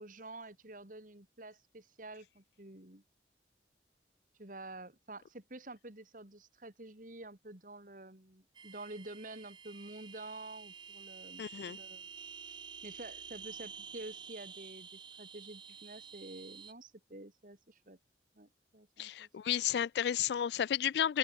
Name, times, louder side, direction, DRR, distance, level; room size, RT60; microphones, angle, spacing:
voice 1, 0.0-3.0 4.4-12.1 12.8-18.0 18.3-19.3, right 2 dB, 50° right, 2.7 m, -49 dB
sound 1, 8.5-16.7, right 6 dB, 25° right, 0.6 m, -50 dB
voice 2, 11.4-11.8 19.0-21.2, left 10 dB, 70° left, 0.3 m, -32 dB
open air
head